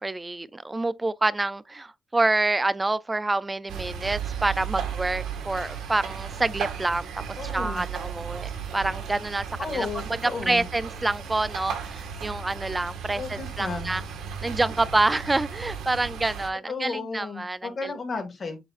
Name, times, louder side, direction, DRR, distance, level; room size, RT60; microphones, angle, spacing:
voice 1, 0.0-7.1 7.5-9.4 9.7-9.9 10.5-14.0 14.4-17.9, right 2 dB, 15° right, 0.4 m, -27 dB
sound 1, 3.7-16.5, right 7 dB, 85° right, 2.3 m, -35 dB
voice 2, 7.4-7.8 9.6-10.7 13.1-14.0 16.7-18.6, left 4 dB, 30° left, 2.0 m, -33 dB
7.5 x 6.4 x 2.5 m
cardioid pair, 160°, 0 cm